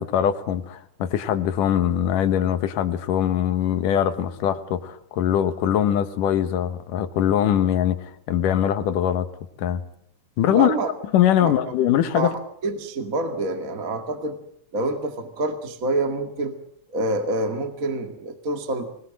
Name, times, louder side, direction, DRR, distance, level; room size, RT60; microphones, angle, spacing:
voice 1, 0.0-9.3 9.6-9.8 10.4-10.8 11.1-12.3, left 10 dB, 85° left, 10 dB, 2.9 m, -22 dB
voice 2, 10.5-10.9 11.4-11.5 12.1-14.4 14.7-16.5 16.9-18.9, right 2 dB, 30° right, 6 dB, 2.0 m, -27 dB
25.0 x 20.0 x 7.7 m, 0.65 s
omnidirectional pair, 3.7 m